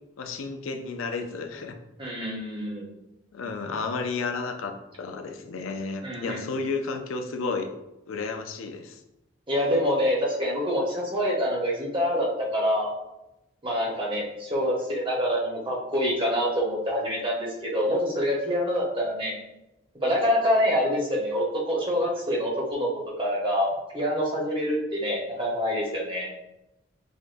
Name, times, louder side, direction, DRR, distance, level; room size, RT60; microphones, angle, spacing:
voice 1, 0.2-1.8 3.3-7.7 8.1-9.0, left 4 dB, 90° left, 6 dB, 0.5 m, -32 dB
voice 2, 2.0-2.9 6.0-6.4 9.5-12.9 13.6-19.3 20.0-22.9 23.2-26.3, equal, 25° right, -3 dB, 1.0 m, -26 dB
6.4 x 2.4 x 2.5 m, 0.91 s
head